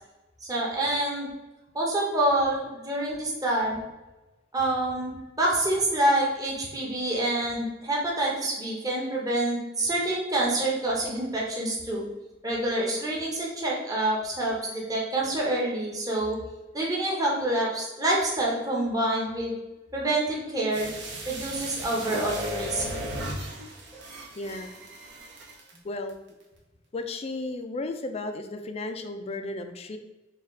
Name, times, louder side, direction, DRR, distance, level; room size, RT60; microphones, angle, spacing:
voice 1, 0.4-1.3 1.7-3.8 4.5-12.0 12.4-16.4 16.7-19.5 19.9-20.9 21.3-22.8 23.9-24.0, right 1 dB, 20° right, -3 dB, 0.8 m, -27 dB
sound 1, 20.7-25.8 26.1-26.2, right 1 dB, 65° right, 0.8 m, -36 dB
voice 2, 24.4-24.8 25.8-26.2 26.9-30.0, left 2 dB, 35° left, 6 dB, 0.4 m, -34 dB
4.2 x 2.4 x 3.7 m, 1.1 s
head